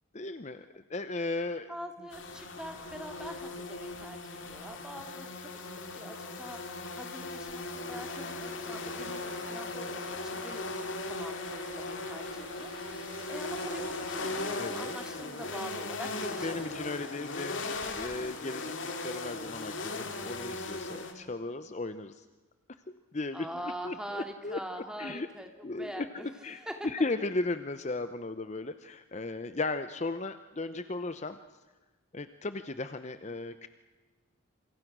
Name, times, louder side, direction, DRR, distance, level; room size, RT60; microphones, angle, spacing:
voice 1, 0.1-0.6 0.9-1.7 14.6-14.9 16.4-18.7 19.0-22.2 23.1-23.5 23.8-24.6 25.0-25.3 25.6-26.1 26.4-31.4 32.1-33.7, left 2 dB, 35° left, 11 dB, 0.7 m, -36 dB
voice 2, 1.7-5.5 5.9-10.7 11.0-16.7 23.3-25.5 25.8-26.7, equal, 5° right, 4 dB, 2.4 m, -44 dB
sound 1, 2.1-21.1, left 3 dB, 60° left, 2.8 m, -38 dB
sound 2, 7.6-16.3, right 3 dB, 25° right, 3.4 m, -52 dB
27.5 x 26.0 x 6.2 m, 1.3 s
head